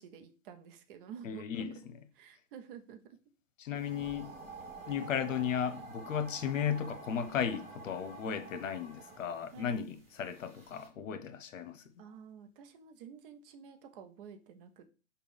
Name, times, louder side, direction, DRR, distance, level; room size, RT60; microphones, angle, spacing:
voice 1, 0.0-1.7 2.1-3.0 3.8-3.9 9.5-9.8 12.0-14.9, right 7 dB, 45° right, 0.7 m, -50 dB
voice 2, 1.2-1.8 3.6-4.3 4.9-11.8, left 8 dB, 80° left, 0.8 m, -35 dB
sound 1, 3.7-10.9, right 3 dB, 15° right, 1.3 m, -49 dB
5.3 x 2.4 x 3.4 m
hypercardioid pair, 135°, 38 cm